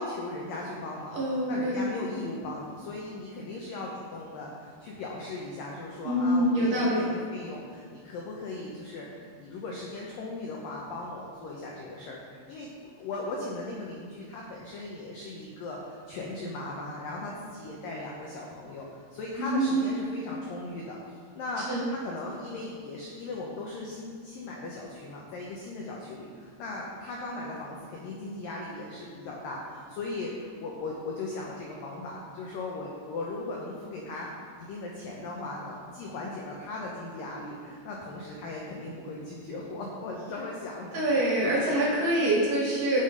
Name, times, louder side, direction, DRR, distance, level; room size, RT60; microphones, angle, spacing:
voice 1, 0.0-21.0 21.3-34.3 34.6-41.7, left 2 dB, 90° left, -2 dB, 1.9 m, -38 dB
voice 2, 1.1-1.8 2.1-2.2 6.1-7.1 19.4-19.9 21.7-21.8 40.9-43.0, right 1 dB, 60° right, -5 dB, 2.4 m, -25 dB
11.0 x 5.6 x 5.1 m, 2.1 s
omnidirectional pair, 5.4 m